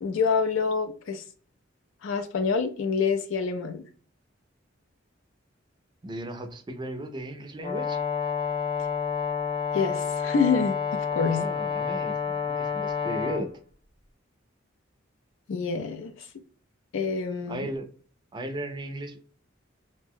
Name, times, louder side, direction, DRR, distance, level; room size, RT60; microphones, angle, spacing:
voice 1, 0.0-1.2 2.0-3.8 9.7-11.5 15.5-16.3 16.9-17.7, left 5 dB, 75° left, 0.4 m, -27 dB
voice 2, 6.0-8.0 11.3-13.5 17.5-17.9 18.3-19.2, right 1 dB, 25° right, 0.4 m, -36 dB
Brass instrument, 7.6-13.4, left 6 dB, 30° left, 0.6 m, -29 dB
2.6 x 2.1 x 3.5 m
head